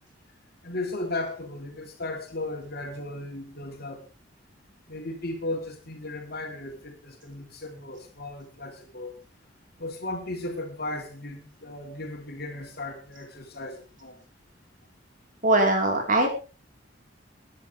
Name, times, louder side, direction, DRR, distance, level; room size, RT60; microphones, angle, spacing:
voice 1, 0.6-4.0 4.9-9.2 9.8-14.2, left 2 dB, 55° left, 3 dB, 3.6 m, -36 dB
voice 2, 15.4-16.3, right 2 dB, 45° right, 2 dB, 4.4 m, -21 dB
23.0 x 11.0 x 3.5 m, 0.32 s
head